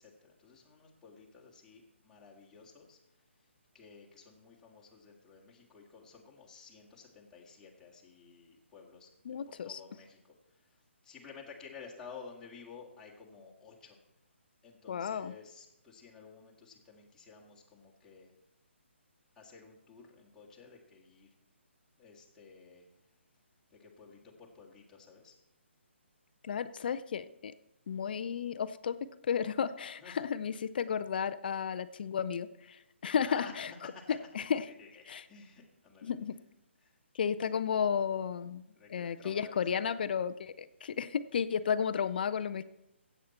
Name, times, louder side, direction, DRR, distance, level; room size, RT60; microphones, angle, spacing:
voice 1, 0.0-3.0 3.7-9.1 9.5-10.3 11.0-14.0 14.6-18.3 19.4-21.3 22.0-22.8 23.7-25.3 30.0-30.2 33.3-33.5 33.9-34.2 34.8-36.1 36.8-36.9 38.7-40.0, left 5 dB, 10° left, -4 dB, 2.0 m, -53 dB
voice 2, 9.3-9.8 14.9-15.3 26.4-27.5 27.9-34.7 35.1-35.3 36.0-36.4 37.1-38.6 38.9-42.6, left 7 dB, 50° left, 14 dB, 0.5 m, -33 dB
15.5 x 8.2 x 4.3 m, 0.88 s
figure-of-eight pair, 145°, 7 cm